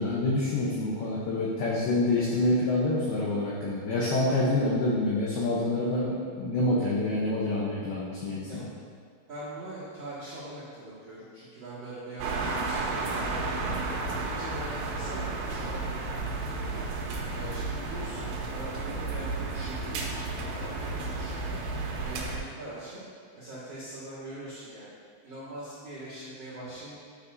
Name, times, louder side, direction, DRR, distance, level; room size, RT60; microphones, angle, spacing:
voice 1, 0.0-8.7, left 2 dB, 85° left, -6 dB, 2.1 m, -27 dB
voice 2, 9.3-13.7 14.1-16.1 16.4-16.8 17.3-21.6 22.0-23.0 23.3-24.9 25.2-27.0, right 1 dB, 65° right, -12 dB, 1.6 m, -42 dB
sound 1, 12.2-22.4, right 3 dB, 85° right, 3.5 m, -32 dB
11.5 x 6.6 x 2.7 m, 2.1 s
omnidirectional pair, 5.9 m